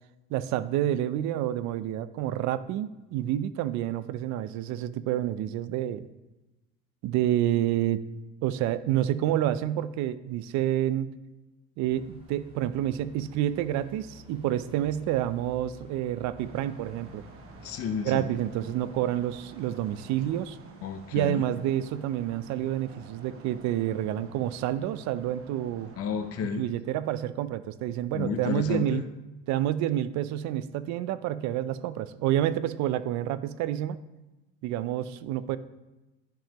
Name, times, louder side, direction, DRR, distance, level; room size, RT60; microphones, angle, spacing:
voice 1, 0.3-6.1 7.0-8.0 8.4-11.1 11.8-17.2 18.0-20.6 21.1-25.9 26.6-29.0 29.5-34.0 34.6-35.6, right 12 dB, 65° right, 15 dB, 0.5 m, -28 dB
sound 1, 11.8-20.4, right 1 dB, 20° right, 1.7 m, -53 dB
sound 2, 16.4-26.5, right 4 dB, 45° right, 0.9 m, -50 dB
voice 2, 17.6-18.3 20.8-21.4 26.0-26.7 28.1-29.0, left 7 dB, 50° left, 8 dB, 0.6 m, -31 dB
10.5 x 5.4 x 2.9 m, 1.1 s
cardioid pair, 130°, 30 cm